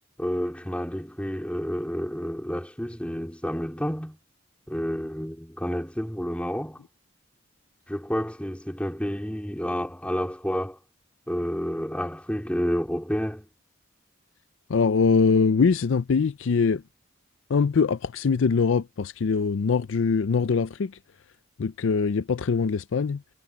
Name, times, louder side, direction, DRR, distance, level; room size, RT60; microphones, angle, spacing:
voice 1, 0.2-4.2 4.7-6.8 7.9-10.8 11.3-13.5, equal, 5° left, 3.5 m, -30 dB
voice 2, 14.7-16.8 17.5-20.9 21.6-23.2, left 5 dB, 70° left, 0.4 m, -23 dB
head